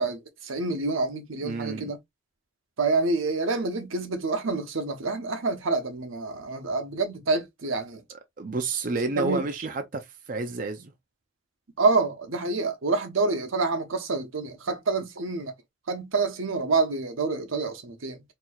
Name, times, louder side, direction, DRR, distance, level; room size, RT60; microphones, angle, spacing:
voice 1, 0.0-2.0 2.8-8.0 9.1-9.5 11.8-15.5 15.9-18.2, right 3 dB, 85° right, 0.9 m, -27 dB
voice 2, 1.4-1.9 8.4-10.9, right 3 dB, 40° right, 0.5 m, -30 dB
4.4 x 2.9 x 2.3 m
head